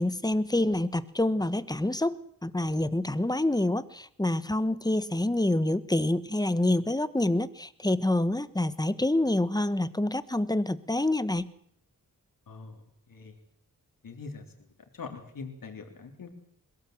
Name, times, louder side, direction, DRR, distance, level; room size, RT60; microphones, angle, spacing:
voice 1, 0.0-11.5, left 1 dB, 10° left, 14 dB, 1.4 m, -27 dB
voice 2, 12.5-12.8 13.1-13.4 14.0-14.4 14.9-16.3, left 4 dB, 75° left, 4 dB, 3.5 m, -42 dB
22.0 x 17.5 x 7.9 m, 0.68 s
cardioid pair, 55°, 34 cm